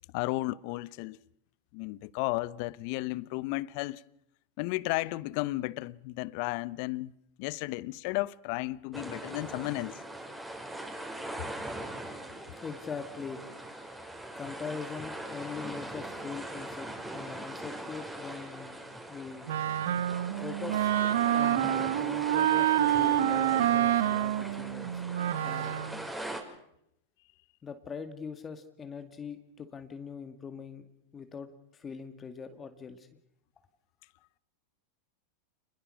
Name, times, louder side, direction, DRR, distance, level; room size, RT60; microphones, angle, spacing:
voice 1, 0.1-1.2 1.7-4.0 4.6-7.1 7.4-10.0, left 20 dB, 55° left, 0.9 m, -33 dB
sound 1, 8.9-26.4, right 1 dB, 10° right, 5.5 m, -41 dB
voice 2, 12.6-13.4 14.4-18.8 19.1-19.5 20.4-20.9 21.3-25.0 25.4-25.8 27.6-30.9 31.1-33.1, left 6 dB, 25° left, 2.1 m, -42 dB
Wind instrument woodwind instrument, 19.5-26.0, right 12 dB, 75° right, 1.0 m, -27 dB
28.0 x 21.5 x 6.5 m
hypercardioid pair, 100°, 0 cm